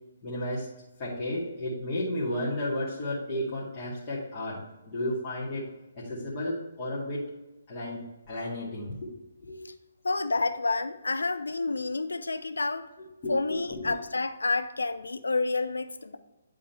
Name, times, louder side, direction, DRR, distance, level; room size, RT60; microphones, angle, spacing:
voice 1, 0.2-0.7 1.0-5.6 5.9-7.3 7.7-8.0 8.3-9.1 9.4-9.7 13.2-13.9, left 1 dB, 30° left, -8 dB, 2.2 m, -33 dB
voice 2, 10.0-12.9 13.3-16.2, left 3 dB, 75° left, 9 dB, 0.6 m, -29 dB
10.5 x 3.8 x 4.4 m, 1.0 s
figure-of-eight pair, 135°, 0 cm